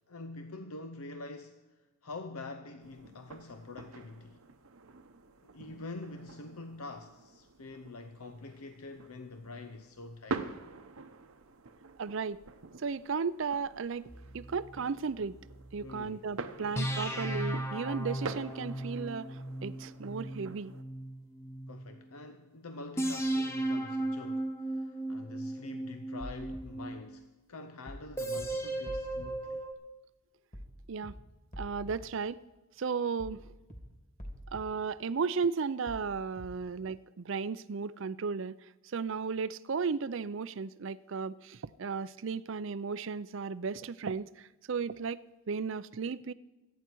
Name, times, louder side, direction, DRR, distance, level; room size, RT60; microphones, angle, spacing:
voice 1, 0.1-4.4 5.4-10.6 15.8-16.3 16.6-16.9 21.7-29.6, left 3 dB, 85° left, 0.8 m, -46 dB
sound 1, 2.8-20.8, right 3 dB, 80° right, 0.9 m, -46 dB
voice 2, 12.0-12.4 12.8-15.4 15.7-20.7 30.9-31.1 31.6-32.4 32.8-33.4 34.5-46.3, right 5 dB, 60° right, 0.5 m, -35 dB
sound 2, 14.1-16.1 16.8-22.0 23.0-27.2 28.2-29.7, right 1 dB, 10° left, 0.9 m, -36 dB
sound 3, 26.2-26.6 27.9-28.1 28.4-28.5 28.9-29.3 30.5-30.7 31.0-31.1 31.5-32.0 33.2-33.4 33.7-33.8 34.2-34.6 35.9-36.1 36.4-36.5, equal, 35° left, 2.8 m, -44 dB
25.5 x 9.4 x 4.6 m
head